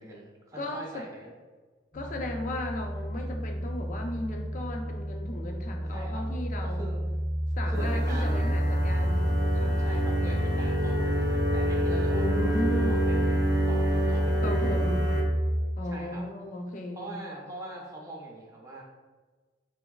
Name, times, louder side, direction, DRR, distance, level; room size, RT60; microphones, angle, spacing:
voice 1, 0.0-1.3 5.9-6.3 6.6-7.0 7.7-8.5 9.8-13.4 13.6-14.9 15.8-16.2 16.9-18.8, right 1 dB, 20° right, -3 dB, 0.6 m, -42 dB
voice 2, 0.5-1.0 1.9-6.9 7.6-9.8 12.1-13.0 14.4-15.0 15.8-17.1, left 1 dB, 45° left, 3 dB, 0.4 m, -36 dB
sound 1, 1.9-15.6, equal, 70° left, 1.1 m, -29 dB
sound 2, 7.7-15.2, equal, 70° right, 0.5 m, -29 dB
3.3 x 3.0 x 2.3 m, 1.3 s
head